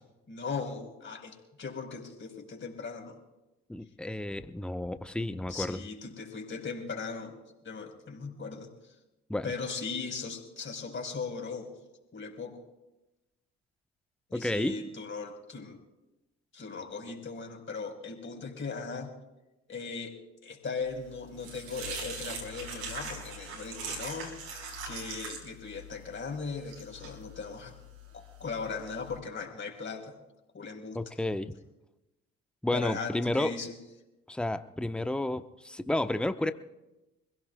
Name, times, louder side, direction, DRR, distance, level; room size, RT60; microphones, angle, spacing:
voice 1, 0.3-3.2 5.5-7.4 7.6-8.9 9.4-11.7 12.1-12.6 14.3-15.8 16.5-19.1 19.7-24.5 24.9-27.8 28.1-30.2 30.5-31.0 32.7-33.8, left 4 dB, 40° left, 2 dB, 4.5 m, -38 dB
voice 2, 3.7-5.8 9.3-9.5 14.3-14.8 30.9-31.5 32.6-33.5 34.3-36.5, left 1 dB, 5° left, 10 dB, 0.9 m, -31 dB
sound 1, 20.9-29.2, right 3 dB, 75° right, 4.6 m, -41 dB
26.0 x 17.0 x 2.3 m, 1.0 s
figure-of-eight pair, 45°, 32 cm